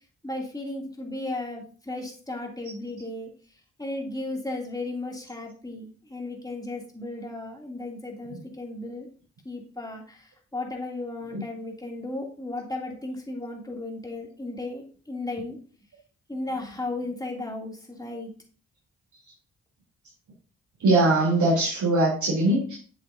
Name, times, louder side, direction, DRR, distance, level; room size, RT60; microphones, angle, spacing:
voice 1, 0.2-3.3 3.8-9.1 9.4-15.6 16.3-18.3, left 2 dB, 10° left, 0 dB, 2.7 m, -35 dB
voice 2, 20.8-22.8, right 2 dB, 65° right, -6 dB, 3.3 m, -21 dB
7.5 x 7.4 x 2.7 m, 0.40 s
supercardioid pair, 50°, 31 cm